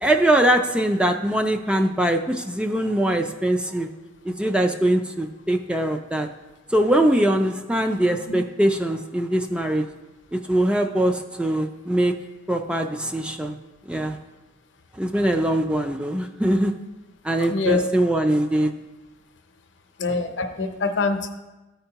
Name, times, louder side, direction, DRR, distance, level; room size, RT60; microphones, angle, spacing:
voice 1, 0.0-3.9 4.2-6.3 6.7-9.9 10.3-12.1 12.5-13.6 13.9-14.2 15.0-16.7 17.2-18.7, right 1 dB, 5° right, 4 dB, 0.3 m, -22 dB
voice 2, 17.5-17.8 20.0-21.3, left 3 dB, 65° left, 6 dB, 0.6 m, -24 dB
13.0 x 4.5 x 2.9 m, 1.1 s
head